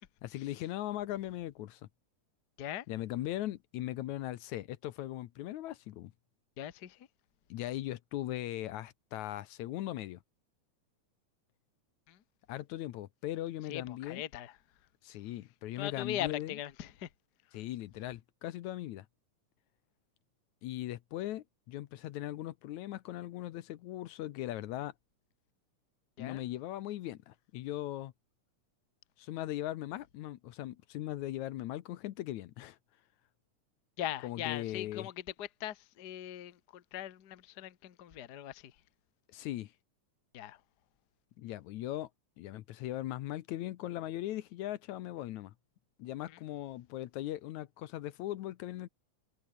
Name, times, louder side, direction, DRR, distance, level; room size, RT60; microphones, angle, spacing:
voice 1, 0.2-1.8 2.9-6.1 7.5-10.2 12.5-14.2 15.0-16.5 17.5-19.1 20.6-24.9 26.2-28.1 29.2-32.8 34.2-35.1 39.3-39.7 41.4-42.1 42.4-45.5 46.0-48.9, left 14 dB, 75° left, 2.2 m, -39 dB
voice 2, 6.6-7.1 12.1-12.2 13.7-14.6 15.8-17.1 26.2-26.4 34.0-38.8 40.3-40.6 46.3-46.4, left 12 dB, 50° left, 1.3 m, -40 dB
omnidirectional pair, 3.5 m